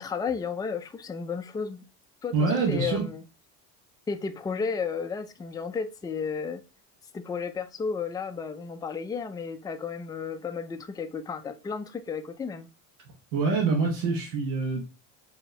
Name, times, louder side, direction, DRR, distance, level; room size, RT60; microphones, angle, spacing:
voice 1, 0.0-1.9 2.2-3.2 4.1-6.6 7.1-12.7, left 5 dB, 10° left, 0.3 m, -33 dB
voice 2, 2.3-3.0 13.3-14.9, right 4 dB, 80° right, 1.2 m, -25 dB
4.2 x 2.8 x 3.1 m
supercardioid pair, 80°, 43 cm